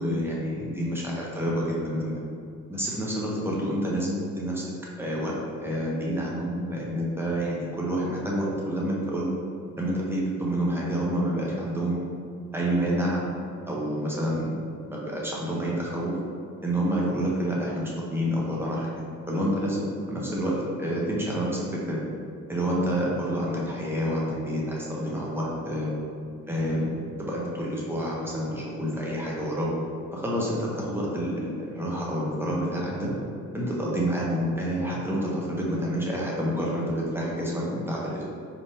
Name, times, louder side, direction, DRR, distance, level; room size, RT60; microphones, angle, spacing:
voice 1, 0.0-2.2 2.7-4.6 5.0-5.3 5.6-9.3 9.8-12.0 12.5-13.2 13.6-14.5 14.9-16.2 16.6-18.9 19.3-22.0 22.5-25.9 26.4-29.7 30.1-33.1 33.5-38.2, equal, 10° right, -5 dB, 0.9 m, -28 dB
4.2 x 3.7 x 2.8 m, 2.3 s
cardioid pair, 90°, 30 cm